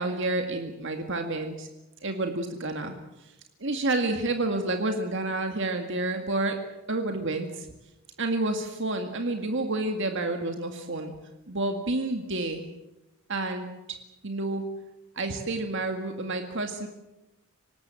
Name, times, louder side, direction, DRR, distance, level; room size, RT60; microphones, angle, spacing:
voice 1, 0.0-1.7 2.0-3.0 3.6-6.6 6.9-7.7 8.2-11.1 11.5-12.6 13.3-13.7 14.2-14.6 15.2-16.9, right 2 dB, 55° right, 5 dB, 2.0 m, -29 dB
25.5 x 19.0 x 7.7 m, 0.97 s
head